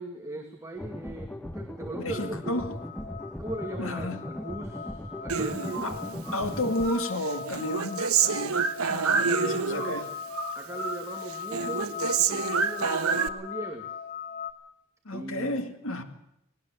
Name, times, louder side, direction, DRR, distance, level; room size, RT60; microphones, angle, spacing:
voice 1, 0.0-2.7 3.4-5.9 9.0-10.0 10.5-13.9 15.1-15.6, right 1 dB, 15° right, 2 dB, 2.3 m, -39 dB
sound 1, 0.8-6.9, equal, 5° left, 1.1 m, -38 dB
voice 2, 2.0-2.7 3.8-4.2 5.8-6.0 6.3-10.1 15.0-16.0, left 1 dB, 65° left, 7 dB, 2.4 m, -32 dB
sound 2, 2.1-14.5, left 7 dB, 35° left, 2.4 m, -39 dB
Human voice, 5.3-6.5 6.8-10.0 10.3-11.0 11.3-13.3, right 6 dB, 80° right, 1.3 m, -28 dB
20.0 x 18.5 x 7.7 m, 0.82 s
head